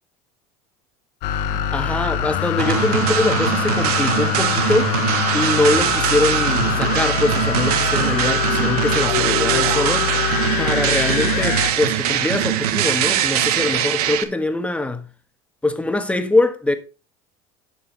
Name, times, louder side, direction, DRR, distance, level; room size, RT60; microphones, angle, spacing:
sound 1, 1.2-11.7, left 9 dB, 60° left, 1.3 m, -24 dB
voice 1, 1.5-5.0 5.3-15.1 15.6-16.8, left 2 dB, 5° left, 1.3 m, -23 dB
sound 2, 2.6-14.2, right 11 dB, 80° right, 1.1 m, -21 dB
11.5 x 5.6 x 3.9 m
hypercardioid pair, 95°, 19 cm